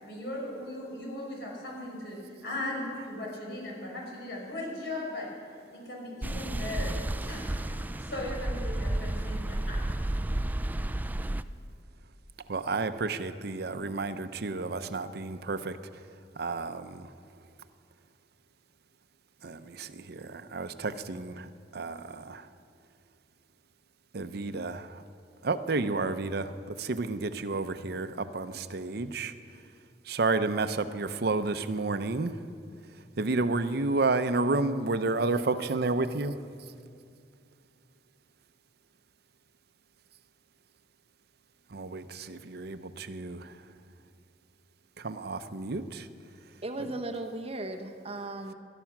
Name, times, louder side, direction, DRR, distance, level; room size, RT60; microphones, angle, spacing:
voice 1, 0.0-5.3 5.7-9.8, left 1 dB, 70° left, -2 dB, 5.1 m, -38 dB
sound 1, 6.2-11.4, right 1 dB, 10° right, 0.3 m, -32 dB
voice 2, 12.5-16.1 16.4-17.1 19.4-22.5 24.1-25.0 25.4-29.3 30.0-32.4 33.2-36.7 41.7-43.7 45.0-46.1, right 3 dB, 60° right, 11 dB, 0.7 m, -31 dB
voice 3, 46.6-48.5, right 2 dB, 35° right, 6 dB, 1.0 m, -36 dB
19.0 x 12.5 x 6.0 m, 2.3 s
head